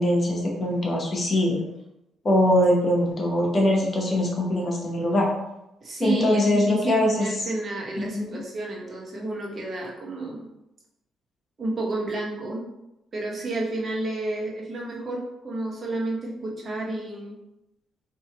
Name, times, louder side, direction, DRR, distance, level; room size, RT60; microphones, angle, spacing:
voice 1, 0.0-1.6 2.2-5.3 6.0-7.3 8.1-8.4, left 1 dB, 40° left, -1 dB, 0.9 m, -22 dB
voice 2, 5.8-10.5 11.6-12.7 13.1-17.4, right 2 dB, 40° right, -3 dB, 1.0 m, -31 dB
4.2 x 2.7 x 2.9 m, 0.89 s
cardioid pair, 90°, 0 cm